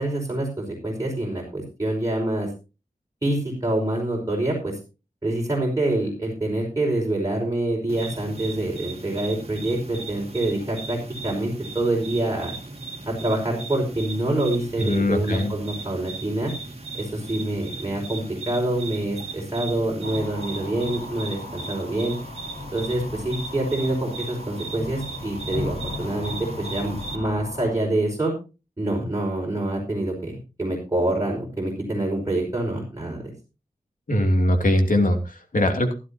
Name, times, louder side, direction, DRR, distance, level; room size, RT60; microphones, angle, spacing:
voice 1, 0.0-2.5 3.2-4.7 5.2-11.0 11.2-12.5 13.1-16.5 17.0-22.2 22.7-28.3 28.8-33.3, right 1 dB, 20° right, -2 dB, 5.2 m, -26 dB
sound 1, 7.9-27.2, right 3 dB, 40° right, 2.5 m, -37 dB
voice 2, 14.8-15.5 34.1-35.9, left 1 dB, 65° left, 4 dB, 2.9 m, -21 dB
sound 2, 20.0-27.7, left 2 dB, 40° left, 6.2 m, -37 dB
16.0 x 12.5 x 2.9 m, 0.30 s
wide cardioid pair, 75°, 15 cm